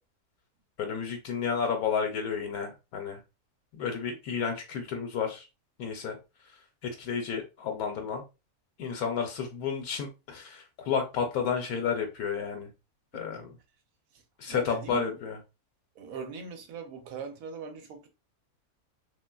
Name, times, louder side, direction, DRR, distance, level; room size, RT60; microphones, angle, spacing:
voice 1, 0.8-3.2 3.7-5.5 5.8-6.2 6.8-8.2 8.8-12.7 13.1-13.5 14.4-15.4, left 6 dB, 80° left, 1.1 m, -31 dB
voice 2, 14.5-15.1 16.0-18.1, right 6 dB, 70° right, 1.0 m, -41 dB
3.1 x 2.7 x 2.2 m
omnidirectional pair, 1.6 m